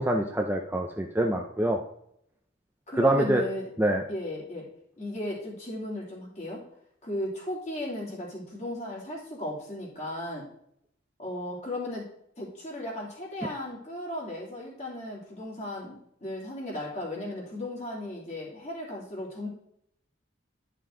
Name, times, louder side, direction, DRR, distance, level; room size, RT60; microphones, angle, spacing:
voice 1, 0.0-1.8 3.0-3.4 3.8-4.0, right 1 dB, 10° right, 2 dB, 0.5 m, -25 dB
voice 2, 2.9-3.6 4.1-4.6 5.0-6.6 7.0-10.4 11.2-12.0 12.4-16.0 16.2-19.5, left 1 dB, 35° left, -3 dB, 2.7 m, -35 dB
10.5 x 5.7 x 3.8 m, 0.71 s
head